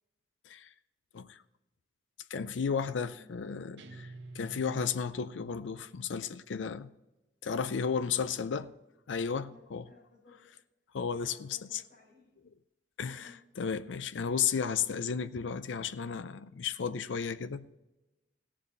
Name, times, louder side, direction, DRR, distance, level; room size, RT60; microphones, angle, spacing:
voice 1, 2.3-6.9 7.4-8.6 9.1-9.9 10.9-11.8 13.0-13.3 13.6-17.6, left 6 dB, 80° left, 0.5 m, -33 dB
Guitar, 3.8-6.4, right 2 dB, 70° right, 1.1 m, -49 dB
voice 2, 7.8-8.7 9.5-10.6 11.1-12.4 13.2-13.4 14.2-14.5, left 4 dB, 45° left, 4.1 m, -58 dB
17.0 x 7.5 x 4.0 m
head